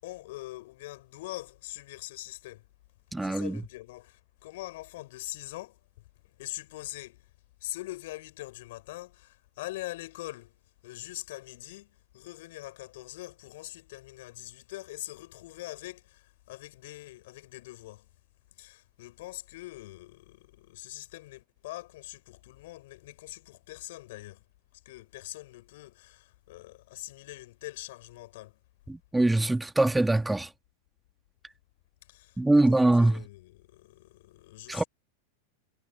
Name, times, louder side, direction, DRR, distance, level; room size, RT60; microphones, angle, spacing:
voice 1, 0.0-2.6 3.2-4.2 4.4-5.8 6.4-7.2 7.6-10.5 10.8-11.9 12.1-16.0 16.5-18.0 18.6-24.4 24.9-28.5 32.1-34.9, left 18 dB, 50° left, 7.8 m, -43 dB
voice 2, 3.1-3.6 28.9-30.5 32.4-33.2 34.7-34.8, right 2 dB, 5° right, 2.6 m, -23 dB
figure-of-eight pair, 90°, 0 cm